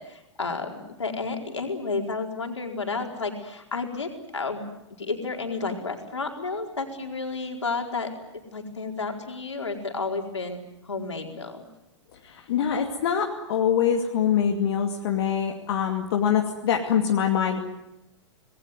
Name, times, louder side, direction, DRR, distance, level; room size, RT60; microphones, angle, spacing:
voice 1, 0.0-4.7 5.0-8.1 8.5-10.6 10.8-11.6, left 4 dB, 80° left, 2 dB, 4.6 m, -31 dB
voice 2, 12.5-17.6, left 8 dB, 60° left, 2 dB, 2.5 m, -24 dB
27.0 x 20.5 x 9.5 m, 0.89 s
figure-of-eight pair, 95°, 15 cm